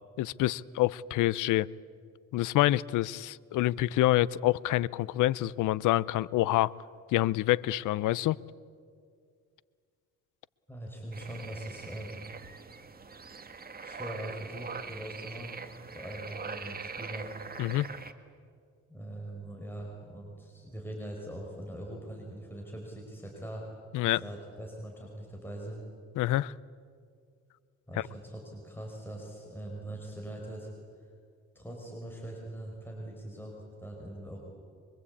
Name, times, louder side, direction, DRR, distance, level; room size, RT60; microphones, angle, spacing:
voice 1, 0.2-1.7 2.3-6.7 7.1-8.4 17.6-17.9 23.9-24.2 26.2-26.5, left 16 dB, 85° left, 22 dB, 0.6 m, -27 dB
voice 2, 10.7-12.2 13.8-15.5 15.9-17.3 18.9-23.7 24.0-25.8 27.9-30.7 31.0-31.1 31.6-34.4, right 1 dB, 5° left, -1 dB, 5.4 m, -42 dB
sound 1, 11.1-18.1, right 5 dB, 30° right, 1.8 m, -43 dB
24.0 x 24.0 x 8.5 m, 2.2 s
cardioid pair, 90°, 30 cm